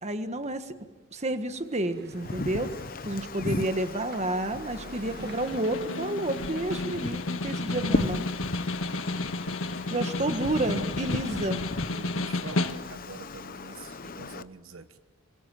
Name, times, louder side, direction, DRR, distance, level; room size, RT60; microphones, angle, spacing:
voice 1, 0.0-0.8 1.1-2.7 3.0-8.3 9.9-11.6, right 1 dB, 30° right, 8 dB, 1.5 m, -30 dB
sound 1, 1.5-6.8, right 2 dB, 50° right, 1.7 m, -48 dB
Wind, 2.1-14.4, left 3 dB, 40° left, 0.8 m, -36 dB
voice 2, 3.2-3.5 9.1-10.6 11.3-15.0, right 3 dB, 70° right, 10 dB, 1.2 m, -46 dB
Snare drum, 5.2-13.1, left 2 dB, 70° left, 1.7 m, -32 dB
27.0 x 24.0 x 7.8 m, 1.1 s
head